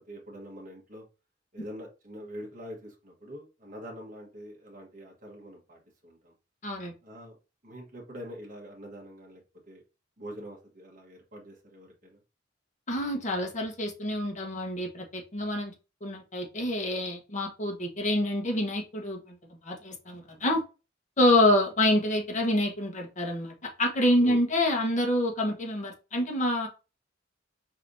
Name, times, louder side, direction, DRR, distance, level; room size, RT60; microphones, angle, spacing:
voice 1, 0.1-1.0 1.5-6.3 7.0-7.4 7.6-9.4 9.7-9.8 10.2-12.2 24.2-24.4, equal, 45° right, -1 dB, 1.3 m, -44 dB
voice 2, 6.6-6.9 12.9-15.7 16.0-19.4 19.6-20.6 21.2-26.7, left 1 dB, 40° left, 2 dB, 1.1 m, -27 dB
4.7 x 3.4 x 2.6 m, 0.29 s
head